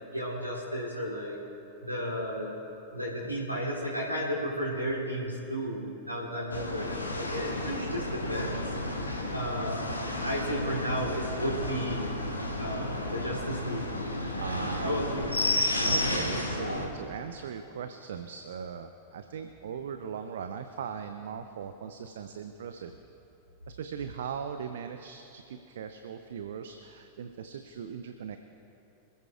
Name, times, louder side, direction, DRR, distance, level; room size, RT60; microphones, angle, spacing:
voice 1, 0.1-1.4 1.8-2.5 2.9-8.8 9.3-12.1 12.6-13.9 14.8-15.4, equal, 90° right, -6 dB, 3.1 m, -33 dB
sound 1, 6.5-16.9, left 1 dB, 80° left, 1.9 m, -32 dB
voice 2, 14.3-15.0 15.8-22.9 23.7-28.4, right 7 dB, 60° right, 8 dB, 0.7 m, -39 dB
26.0 x 15.0 x 2.5 m, 2.9 s
figure-of-eight pair, 90°, 0 cm